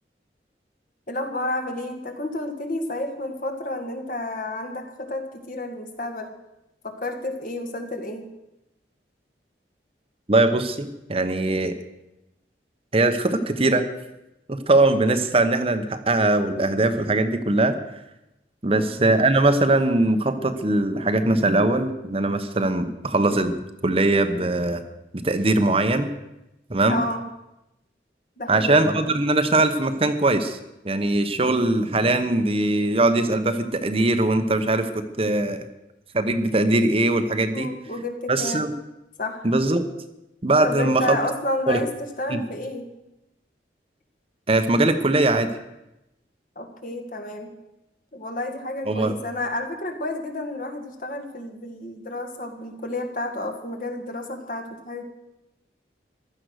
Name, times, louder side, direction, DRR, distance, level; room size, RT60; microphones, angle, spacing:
voice 1, 1.1-6.3 6.8-8.3 18.7-18.9 26.9-27.2 28.4-28.9 37.5-38.7 39.2-39.5 40.6-42.9 46.6-47.5 48.1-55.0, left 2 dB, 50° left, 4 dB, 2.1 m, -31 dB
voice 2, 10.3-11.8 12.9-13.9 14.5-17.8 18.6-24.8 25.1-26.1 26.7-27.0 28.5-30.6 30.8-34.9 35.2-35.6 36.1-37.7 38.3-38.7 39.4-39.9 40.4-41.2 41.7-41.8 42.3-42.4 44.5-45.5 48.9-49.1, right 2 dB, 35° right, 8 dB, 1.0 m, -21 dB
15.5 x 12.0 x 6.5 m, 0.92 s
head